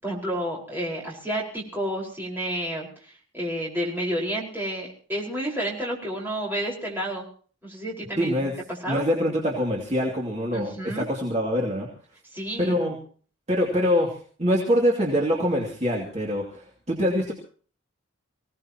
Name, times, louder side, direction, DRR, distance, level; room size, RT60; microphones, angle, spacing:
voice 1, 0.0-7.2 7.6-8.5 8.8-9.0 10.5-11.0 12.3-12.8, right 1 dB, 10° right, -4 dB, 4.9 m, -30 dB
voice 2, 8.2-8.5 8.9-11.9 12.6-13.0 13.5-17.3, equal, 30° right, -2 dB, 2.6 m, -24 dB
25.0 x 17.5 x 3.0 m, 0.43 s
head